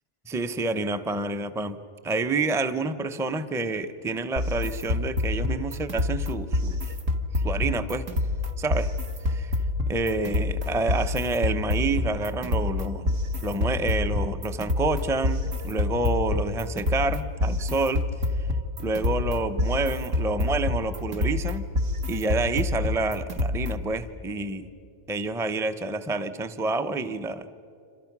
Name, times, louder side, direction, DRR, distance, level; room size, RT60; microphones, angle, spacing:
voice 1, 0.3-6.9 7.3-8.0 8.6-8.9 9.3-9.6 9.9-18.0 18.8-21.6 22.1-24.7 25.1-27.5, right 2 dB, 5° right, 10 dB, 0.4 m, -28 dB
sound 1, 4.4-23.9, left 2 dB, 70° right, 1.8 m, -27 dB
28.5 x 26.0 x 6.1 m, 2.7 s
omnidirectional pair, 1.4 m